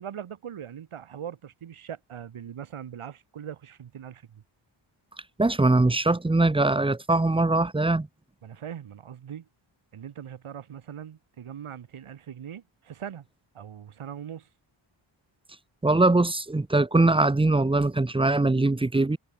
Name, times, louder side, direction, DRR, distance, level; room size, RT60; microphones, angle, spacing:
voice 1, 0.0-4.4 8.4-9.5 9.9-13.3 13.5-14.5, right 9 dB, 85° right, 3.8 m, -40 dB
voice 2, 5.4-8.1 15.8-19.2, right 2 dB, 10° right, 0.7 m, -22 dB
wide cardioid pair, 95°, 49 cm